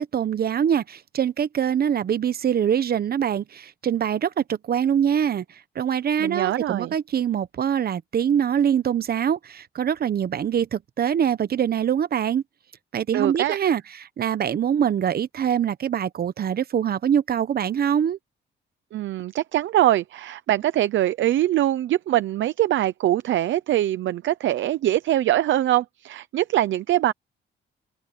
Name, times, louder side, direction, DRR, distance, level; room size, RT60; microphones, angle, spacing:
voice 1, 0.0-5.4 5.7-12.4 12.9-18.2, right 8 dB, 50° right, 1.0 m, -24 dB
voice 2, 6.2-6.9 13.1-13.6 18.9-27.1, right 13 dB, 70° right, 0.8 m, -23 dB
open air
cardioid pair, 90°, 20 cm